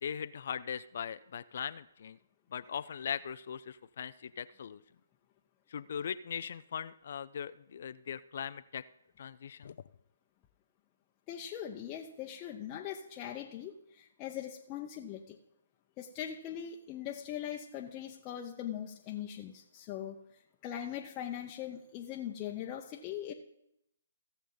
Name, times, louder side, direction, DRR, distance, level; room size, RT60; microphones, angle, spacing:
voice 1, 0.0-2.2 2.5-4.8 5.7-8.8 9.2-9.8, left 7 dB, 55° left, 14 dB, 0.4 m, -40 dB
voice 2, 11.3-15.4 16.0-23.3, left 10 dB, 25° left, 0 dB, 0.8 m, -41 dB
16.5 x 6.8 x 3.9 m, 0.82 s
hypercardioid pair, 140°, 0 cm